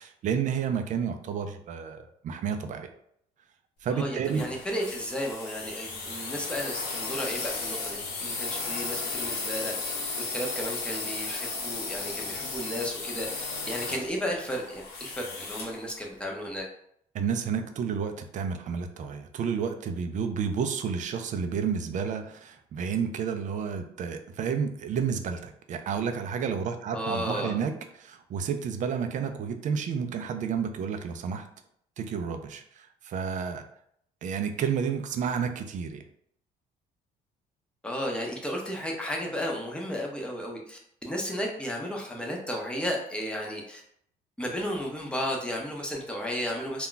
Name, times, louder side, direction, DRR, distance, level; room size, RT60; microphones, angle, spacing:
voice 1, 0.0-2.9 3.8-4.6 17.1-31.5 32.0-33.6 34.2-36.0, right 6 dB, 50° right, 7 dB, 0.4 m, -31 dB
voice 2, 3.9-9.9 10.3-16.7 26.9-27.6 37.8-43.8 44.4-46.9, equal, 5° left, -1 dB, 0.6 m, -33 dB
sound 1, 4.2-15.8, left 3 dB, 70° left, 0.8 m, -35 dB
2.3 x 2.1 x 3.8 m, 0.70 s
cardioid pair, 110°, 17 cm